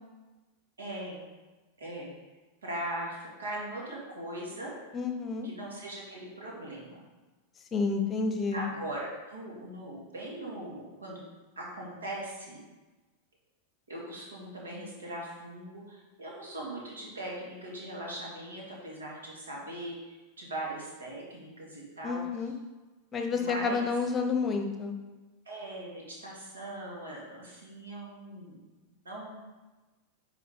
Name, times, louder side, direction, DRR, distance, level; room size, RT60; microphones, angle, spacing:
voice 1, 0.8-1.2 1.8-2.1 2.6-4.8 5.4-7.0 8.5-11.2 11.6-12.6 13.9-22.5 23.3-23.9 25.4-28.6 29.0-29.3, right 1 dB, 70° right, -4 dB, 2.5 m, -40 dB
voice 2, 4.9-5.5 7.7-8.6 22.0-22.5 23.1-24.9, left 4 dB, 25° left, 5 dB, 0.9 m, -30 dB
9.5 x 4.7 x 3.9 m, 1.2 s
figure-of-eight pair, 90°, 0 cm